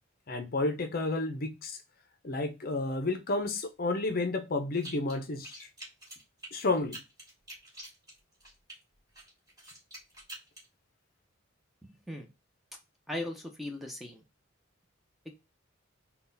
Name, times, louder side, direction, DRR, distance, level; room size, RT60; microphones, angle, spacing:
voice 1, 0.3-1.8 2.2-5.7 6.5-7.0, left 2 dB, 45° left, 0.6 m, -31 dB
sound 1, 4.7-5.2 5.4-8.8 9.1-10.6, right 1 dB, 20° right, 1.9 m, -46 dB
voice 2, 13.1-14.2 15.2-15.3, left 1 dB, ahead, 0.6 m, -38 dB
3.9 x 2.3 x 3.9 m
head